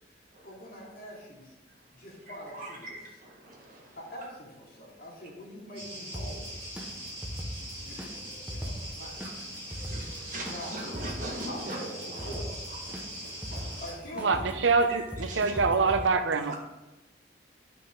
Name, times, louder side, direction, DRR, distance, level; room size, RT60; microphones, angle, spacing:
voice 1, 0.4-1.5 1.9-3.0 4.0-6.5 7.8-8.2 8.5-9.8 10.5-10.7 11.5-12.6 13.8-14.5, equal, 50° left, -4 dB, 2.5 m, -44 dB
voice 2, 2.5-4.0 7.3-7.5 9.7-12.3 12.7-13.8 14.4-14.5 14.9-15.6 16.3-16.5, right 1 dB, 45° right, -1 dB, 1.7 m, -41 dB
sound 1, 5.7-13.9, equal, 30° right, 3.2 m, -42 dB
sound 2, 6.1-16.0, equal, 10° right, 0.8 m, -40 dB
voice 3, 14.2-16.5, right 4 dB, 75° right, 9 dB, 0.6 m, -25 dB
9.5 x 5.9 x 3.8 m, 1.1 s
head